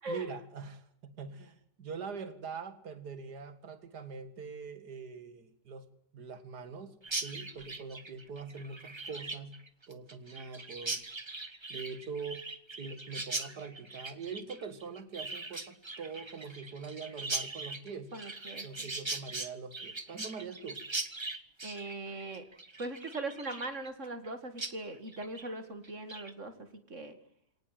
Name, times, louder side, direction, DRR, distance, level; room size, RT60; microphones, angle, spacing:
voice 1, 0.1-5.9 6.1-9.6 9.9-11.0 11.7-12.5 12.8-18.1 18.6-20.8, right 5 dB, 80° right, 11 dB, 2.5 m, -43 dB
Chirp tweet, 7.0-24.3 24.6-24.7 25.1-25.5 25.8-26.3, right 3 dB, 20° right, 1.1 m, -40 dB
voice 2, 18.1-18.9 21.6-22.5 22.8-27.2, right 2 dB, 50° right, 9 dB, 2.6 m, -40 dB
22.5 x 18.5 x 7.7 m, 0.69 s
omnidirectional pair, 1.7 m